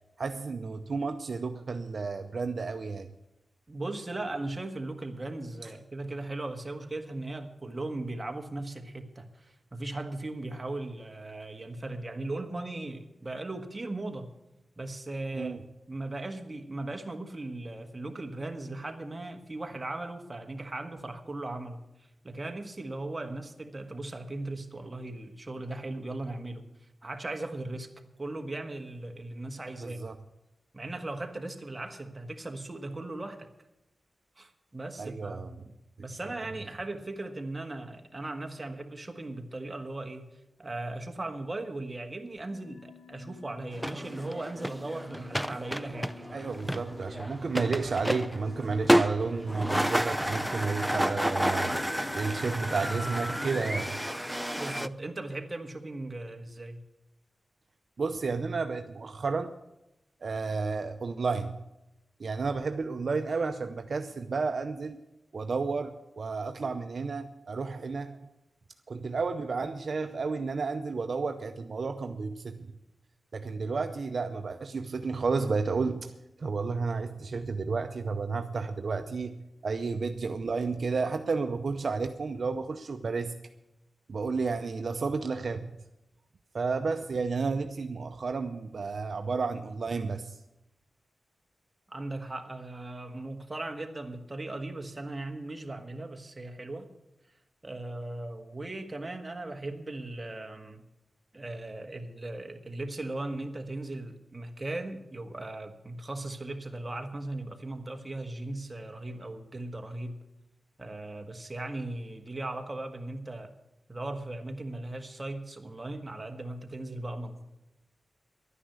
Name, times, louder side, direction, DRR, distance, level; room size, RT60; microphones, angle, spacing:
voice 1, 0.2-3.1 15.3-15.6 29.8-30.1 35.0-35.5 46.3-51.8 52.1-53.9 58.0-59.5 60.2-61.6 62.2-65.0 65.3-68.2 68.9-72.7 73.3-76.1 76.4-83.3 84.1-85.7 86.5-90.4, right 4 dB, 60° right, 7 dB, 0.7 m, -32 dB
voice 2, 3.7-14.3 14.8-15.5 15.9-21.8 22.2-26.7 27.0-27.9 28.2-30.0 30.7-33.5 34.4-40.3 40.6-46.5 54.6-56.8 91.9-96.9 97.6-100.8 101.3-110.2 110.8-113.5 113.9-117.4, right 2 dB, 25° right, 4 dB, 1.5 m, -38 dB
sound 1, 42.5-54.1, left 6 dB, 70° left, 1.8 m, -51 dB
sound 2, 43.7-54.9, equal, ahead, 0.4 m, -30 dB
11.5 x 9.9 x 8.1 m, 0.92 s
wide cardioid pair, 105°, 0 cm